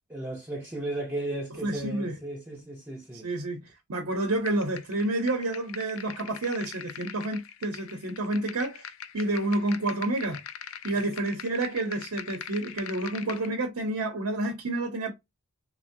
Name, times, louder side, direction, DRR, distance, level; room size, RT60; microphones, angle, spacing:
voice 1, 0.1-3.3, right 1 dB, 10° right, 0.4 m, -35 dB
voice 2, 1.6-2.1 3.2-3.6 3.9-10.4 10.8-15.1, right 2 dB, 70° right, 0.7 m, -29 dB
sound 1, 4.5-13.5, left 9 dB, 65° left, 0.4 m, -43 dB
3.4 x 2.0 x 2.5 m
head